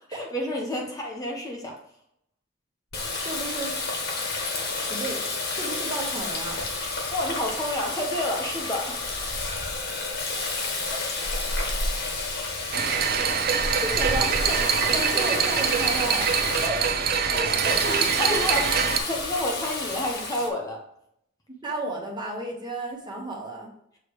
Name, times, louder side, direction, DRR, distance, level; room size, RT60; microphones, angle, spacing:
voice 1, 0.1-1.8 7.1-9.1 11.6-11.8 17.2-18.6 19.1-20.8, left 1 dB, 20° left, -1 dB, 1.0 m, -30 dB
Water tap faucet, 2.9-16.7 17.6-20.5, left 3 dB, 55° left, 1.2 m, -31 dB
voice 2, 3.2-3.8 4.9-5.2 5.5-6.6 13.7-16.3 16.6-16.8 17.6-18.0 18.3-18.6 21.6-23.7, right 2 dB, 25° right, -1 dB, 1.1 m, -33 dB
sound 1, 12.7-19.0, right 6 dB, 50° right, 0.6 m, -24 dB
6.7 x 3.1 x 4.8 m, 0.72 s
head